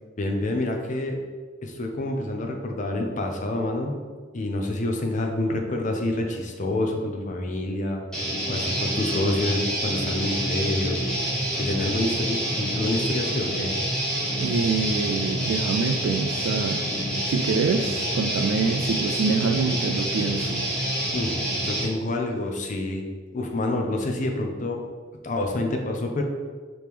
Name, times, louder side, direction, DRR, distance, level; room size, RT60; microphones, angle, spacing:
voice 1, 0.2-1.2 1.6-4.0 4.3-8.0 8.5-11.0 11.6-13.7 21.1-21.4 21.6-24.8 25.2-26.2, left 1 dB, 40° left, 2 dB, 0.5 m, -27 dB
Guitar, 8.1-21.8, right 1 dB, 5° left, 1.1 m, -27 dB
voice 2, 14.4-16.8 17.3-20.6, right 4 dB, 80° right, 4 dB, 0.3 m, -25 dB
4.9 x 3.0 x 3.4 m, 1.5 s
head